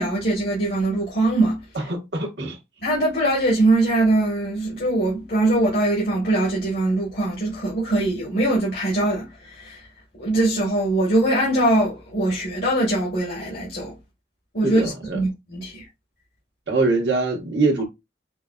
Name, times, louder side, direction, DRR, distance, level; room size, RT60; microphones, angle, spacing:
voice 1, 0.0-1.6 2.8-9.9 10.2-14.0 14.5-15.8, right 2 dB, 60° left, 1.7 m, -22 dB
voice 2, 1.7-2.6 14.6-15.2 16.7-17.8, right 3 dB, 85° right, 1.3 m, -23 dB
5.0 x 2.3 x 2.4 m
head